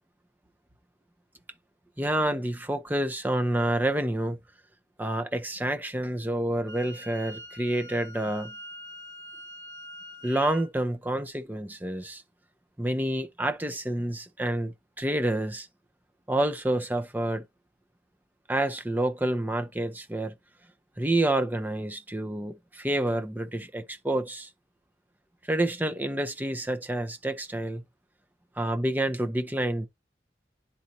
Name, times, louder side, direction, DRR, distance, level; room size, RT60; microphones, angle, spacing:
voice 1, 2.0-4.4 5.0-8.5 10.2-12.2 12.8-15.7 16.3-17.4 18.5-20.3 21.0-24.5 25.5-27.8 28.6-29.9, right 1 dB, 10° right, 0.7 m, -28 dB
Wind instrument woodwind instrument, 6.7-10.7, equal, 75° right, 1.5 m, -44 dB
10.5 x 4.2 x 2.7 m
head